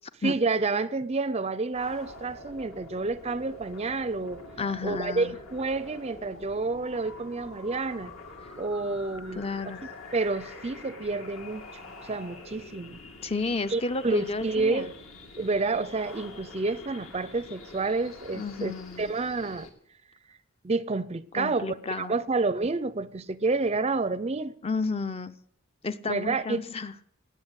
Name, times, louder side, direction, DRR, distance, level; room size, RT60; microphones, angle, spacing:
voice 1, 0.2-4.4 4.8-8.1 8.6-9.5 10.1-11.6 12.0-13.0 13.7-14.9 15.4-19.7 20.6-24.6 26.1-26.6, right 3 dB, 30° right, 0.5 m, -29 dB
sound 1, 1.7-19.7, left 2 dB, 70° left, 2.7 m, -46 dB
voice 2, 4.6-5.4 9.4-9.8 13.2-14.9 18.3-19.1 21.3-22.2 24.6-25.4 25.8-26.9, left 3 dB, 25° left, 0.5 m, -32 dB
18.5 x 8.3 x 8.0 m
head